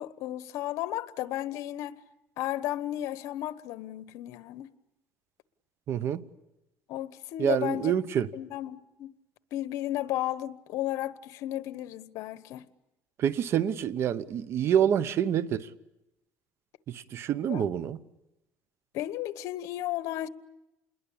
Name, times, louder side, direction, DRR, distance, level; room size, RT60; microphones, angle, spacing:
voice 1, 0.0-2.0 2.4-4.7 6.9-7.9 8.3-9.1 9.5-12.7 17.5-17.6 18.9-20.3, left 14 dB, 75° left, 1.1 m, -34 dB
voice 2, 5.9-6.2 7.4-8.3 13.2-15.7 16.9-18.0, right 9 dB, 50° right, 1.0 m, -27 dB
28.0 x 22.0 x 8.7 m
cardioid pair, 130°, 5 cm